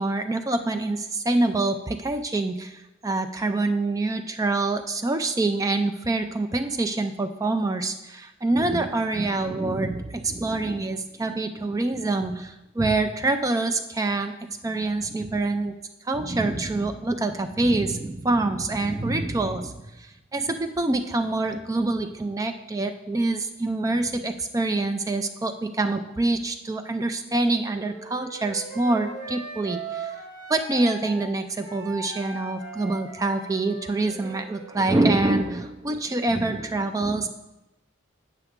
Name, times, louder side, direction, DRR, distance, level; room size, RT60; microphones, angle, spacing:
voice 1, 0.0-14.3 14.6-15.7 16.1-30.1 30.5-37.3, right 2 dB, 15° right, 7 dB, 0.3 m, -26 dB
Wind instrument woodwind instrument, 27.7-31.3 31.6-35.4, right 4 dB, 55° right, 2.6 m, -39 dB
8.0 x 5.7 x 3.6 m, 0.99 s
head